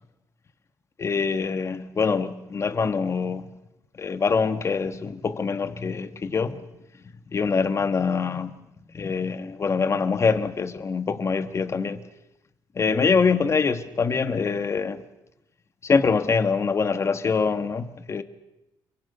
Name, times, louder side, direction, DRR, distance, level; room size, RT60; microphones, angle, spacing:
voice 1, 1.0-3.5 4.0-6.6 7.3-8.5 8.9-12.0 12.7-15.0 15.8-18.2, left 5 dB, 35° left, 1.7 m, -24 dB
29.5 x 23.5 x 5.7 m
cardioid pair, 115°, 8 cm